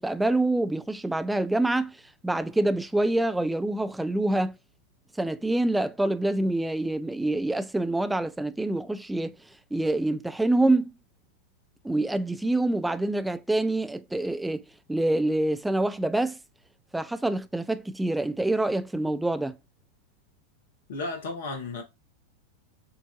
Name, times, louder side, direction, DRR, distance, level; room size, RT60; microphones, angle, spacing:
voice 1, 0.0-2.0 2.2-4.6 5.2-9.4 9.7-10.9 11.8-16.4 16.9-19.6, right 2 dB, 5° right, 0.4 m, -26 dB
voice 2, 20.9-21.8, left 3 dB, 55° left, 1.4 m, -33 dB
6.7 x 2.7 x 2.3 m
figure-of-eight pair, 90°, 0 cm